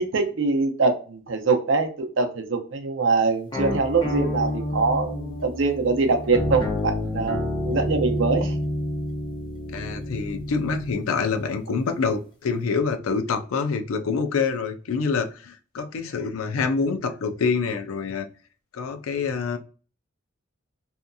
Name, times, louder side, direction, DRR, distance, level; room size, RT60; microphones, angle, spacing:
voice 1, 0.0-8.5, right 4 dB, 65° right, 5 dB, 0.5 m, -23 dB
sound 1, 3.5-11.0, left 1 dB, 20° left, 0.7 m, -29 dB
voice 2, 9.7-18.3 18.7-19.6, left 5 dB, 90° left, 8 dB, 0.4 m, -26 dB
2.8 x 2.5 x 2.2 m, 0.38 s
head